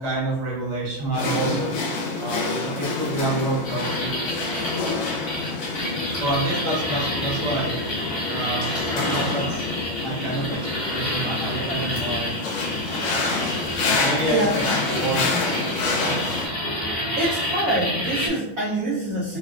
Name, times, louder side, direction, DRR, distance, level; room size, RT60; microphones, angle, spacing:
voice 1, 0.0-1.7 2.2-4.1 6.2-7.8 8.3-9.7 10.0-12.4 13.8-14.5 14.9-16.2, right 2 dB, 45° right, -5 dB, 0.5 m, -28 dB
sound 1, 1.1-16.5, left 3 dB, 75° left, 1.2 m, -28 dB
sound 2, 3.6-18.3, left 1 dB, 50° left, 0.7 m, -29 dB
voice 2, 14.2-14.7 17.2-19.4, right 1 dB, 80° right, -7 dB, 0.7 m, -25 dB
3.4 x 2.1 x 2.3 m, 0.88 s
omnidirectional pair, 2.2 m